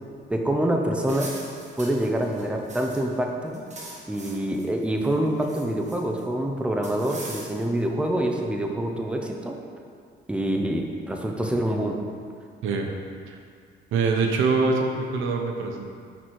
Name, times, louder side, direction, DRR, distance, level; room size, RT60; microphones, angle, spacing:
voice 1, 0.3-1.3 1.8-3.6 4.1-9.6 10.3-12.0, right 1 dB, 5° right, 2 dB, 0.6 m, -26 dB
sound 1, 1.0-3.2 3.5-4.7 5.0-6.2 6.8-7.8, right 2 dB, 35° right, 1.4 m, -42 dB
voice 2, 13.9-15.9, right 4 dB, 90° right, 3 dB, 0.7 m, -24 dB
6.1 x 4.2 x 4.6 m, 2.1 s
cardioid pair, 90°, 20 cm